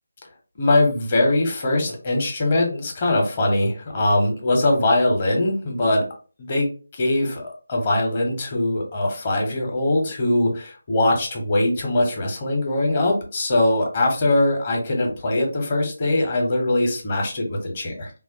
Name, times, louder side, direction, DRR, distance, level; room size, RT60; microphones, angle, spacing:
voice 1, 0.6-6.0 6.4-18.1, left 2 dB, 35° left, 1 dB, 0.9 m, -21 dB
3.2 x 2.5 x 2.5 m, 0.36 s
figure-of-eight pair, 155°, 0 cm